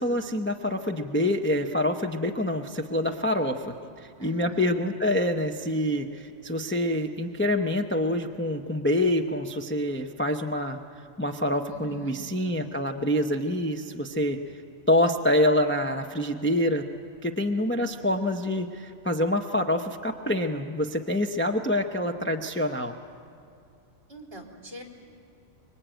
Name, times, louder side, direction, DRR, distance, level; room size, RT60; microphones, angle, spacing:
voice 1, 0.0-10.8 11.2-14.4 14.9-16.9 17.2-22.9, left 1 dB, 10° left, 4 dB, 0.7 m, -26 dB
voice 2, 4.2-4.6 11.7-12.1 24.1-24.8, right 1 dB, 50° right, 0 dB, 3.8 m, -43 dB
24.5 x 23.0 x 9.1 m, 2.5 s
omnidirectional pair, 1.3 m